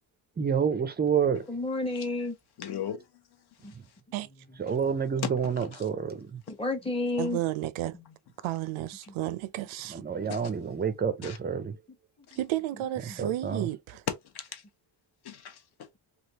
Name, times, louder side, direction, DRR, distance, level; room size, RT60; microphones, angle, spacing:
voice 1, 0.4-1.5 3.7-3.8 4.6-6.4 9.9-11.8 13.2-13.7, right 7 dB, 20° right, 0.4 m, -28 dB
voice 2, 1.5-2.4 3.6-3.7 6.5-7.4 7.9-8.0 13.1-13.2, left 2 dB, 10° left, 0.7 m, -31 dB
voice 3, 2.6-3.1 3.6-3.8 5.2-5.3 5.7-5.8 10.3-10.5 11.2-11.4 12.3-12.4 14.1-14.6 15.2-15.9, left 9 dB, 55° left, 0.8 m, -36 dB
voice 4, 7.2-8.0 8.4-10.0 12.4-14.0, right 14 dB, 85° right, 0.5 m, -32 dB
3.3 x 2.4 x 2.8 m
wide cardioid pair, 155°, 47 cm